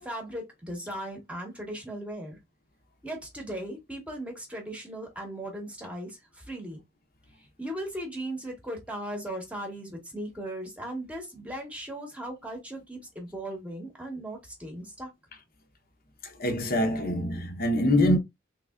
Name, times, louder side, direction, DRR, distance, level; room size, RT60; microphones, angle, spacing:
voice 1, 0.0-2.4 3.0-6.8 7.4-15.1, right 1 dB, 5° right, 1.1 m, -37 dB
voice 2, 16.2-18.2, left 1 dB, 50° left, 0.8 m, -24 dB
3.6 x 3.3 x 2.3 m
head